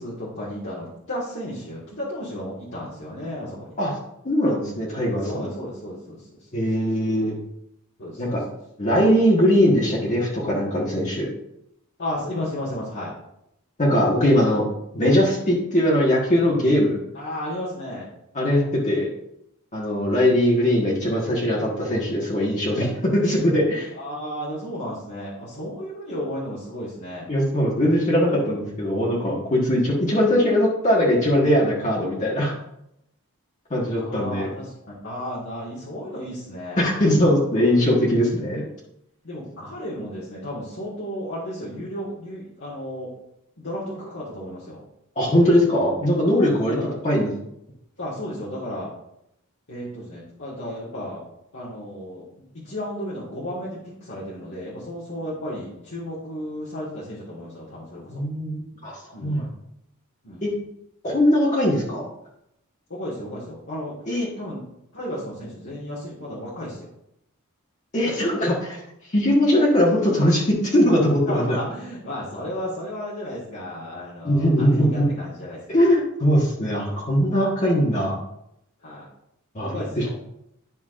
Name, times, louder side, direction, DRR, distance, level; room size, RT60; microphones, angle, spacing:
voice 1, 0.0-3.8 5.2-6.5 8.0-8.4 12.0-13.1 17.1-18.1 23.9-27.3 33.9-36.9 39.2-43.1 43.6-44.8 46.4-47.0 48.0-48.9 49.7-51.3 51.5-52.3 52.5-58.2 59.1-59.5 60.2-60.6 62.9-64.0 64.4-64.6 64.9-66.9 71.3-75.8 78.8-79.1 79.6-80.2, equal, 60° left, -8 dB, 1.8 m, -33 dB
voice 2, 4.2-5.4 6.5-7.3 8.2-8.4 8.8-11.3 13.8-14.6 14.9-17.0 18.3-19.1 19.7-23.9 27.3-32.5 33.7-34.5 36.8-38.6 45.1-46.8 47.0-47.3 58.1-58.9 59.2-59.5 60.4-60.5 61.0-62.1 64.1-64.3 67.9-68.8 69.1-71.6 74.2-75.1 75.7-78.2 79.5-79.7, equal, 35° left, -5 dB, 1.5 m, -20 dB
11.0 x 5.8 x 2.5 m, 0.79 s
head